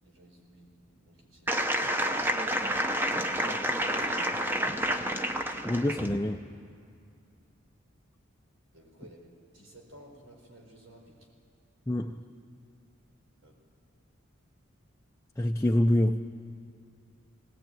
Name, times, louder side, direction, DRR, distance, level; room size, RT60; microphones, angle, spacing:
voice 1, 0.0-1.9 3.3-4.7 8.7-11.3 13.4-13.6, equal, 85° right, 1 dB, 4.4 m, -52 dB
sound 1, 1.5-6.2, equal, 10° right, 0.8 m, -29 dB
voice 2, 5.6-6.4 11.9-12.2 15.4-16.2, left 1 dB, 15° left, 3 dB, 0.5 m, -26 dB
19.0 x 18.5 x 9.0 m, 2.4 s
head